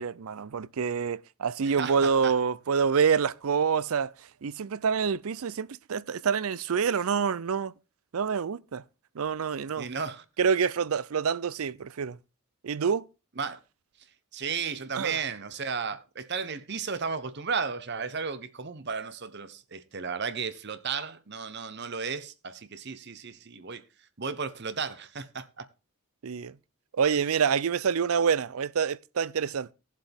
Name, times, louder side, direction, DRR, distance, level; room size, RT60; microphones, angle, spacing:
voice 1, 0.0-4.1 4.4-7.7 8.1-8.8 9.2-9.9 10.4-12.2 12.6-13.0 14.9-15.2 26.2-26.5 26.9-29.7, right 6 dB, 75° right, 0.5 m, -27 dB
voice 2, 1.6-2.3 9.8-10.2 13.4-13.6 14.3-23.8 24.2-25.7, right 5 dB, 50° right, 0.9 m, -34 dB
17.0 x 7.5 x 3.5 m
head